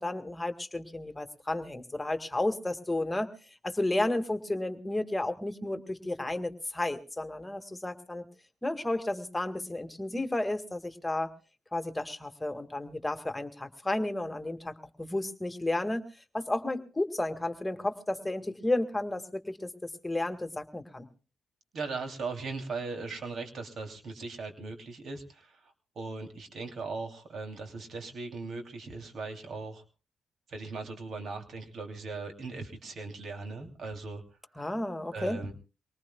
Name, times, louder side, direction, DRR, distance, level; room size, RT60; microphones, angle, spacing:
voice 1, 0.0-3.3 3.6-8.3 8.6-11.3 11.7-16.0 16.3-21.1 34.6-35.4, left 1 dB, 15° left, 7 dB, 1.8 m, -32 dB
voice 2, 21.7-29.8 30.5-34.2 34.6-34.7 35.1-35.5, right 3 dB, 65° right, 4 dB, 2.9 m, -39 dB
24.5 x 19.0 x 2.3 m, 0.34 s
supercardioid pair, 55°, 0 cm